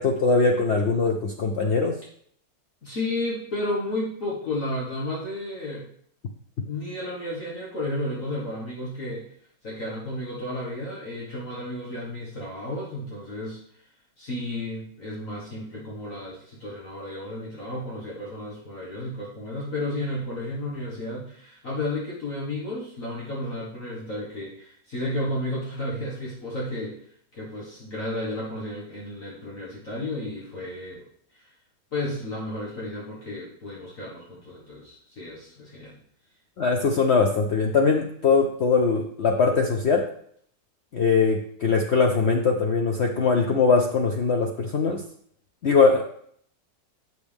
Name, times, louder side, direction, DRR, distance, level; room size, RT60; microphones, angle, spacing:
voice 1, 0.0-2.0 36.6-40.1 40.9-45.0 45.6-46.0, left 4 dB, 85° left, 2 dB, 0.5 m, -21 dB
voice 2, 2.8-5.9 6.7-9.3 9.6-13.6 14.2-27.0 27.3-31.1 31.3-31.5 31.9-36.0, left 1 dB, 45° left, -6 dB, 2.0 m, -32 dB
8.0 x 6.5 x 3.5 m, 0.64 s
omnidirectional pair, 2.0 m